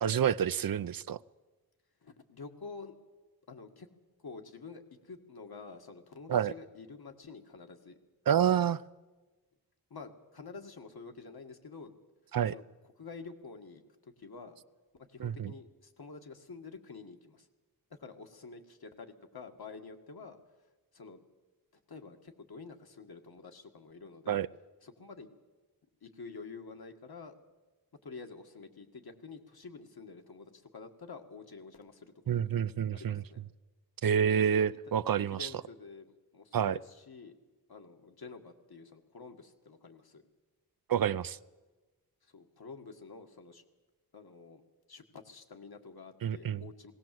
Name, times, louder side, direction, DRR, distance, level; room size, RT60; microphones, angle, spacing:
voice 1, 0.0-1.2 6.3-6.5 8.3-8.8 12.3-12.5 15.2-15.5 24.3-24.5 32.3-33.2 34.0-35.5 36.5-36.8 40.9-41.4 46.2-46.6, right 8 dB, 60° right, 18 dB, 0.6 m, -28 dB
voice 2, 2.0-2.9 3.5-3.9 4.2-8.0 9.9-11.9 12.5-12.6 13.0-14.6 14.9-17.5 17.9-20.4 20.9-21.2 21.9-24.4 24.8-25.3 26.0-27.4 28.0-32.4 32.9-33.4 34.5-34.8 35.3-37.3 37.7-40.2 42.2-43.6 44.1-44.6 44.9-46.9, left 4 dB, 70° left, 5 dB, 1.9 m, -48 dB
19.5 x 18.0 x 7.7 m, 1.2 s
wide cardioid pair, 100°, 39 cm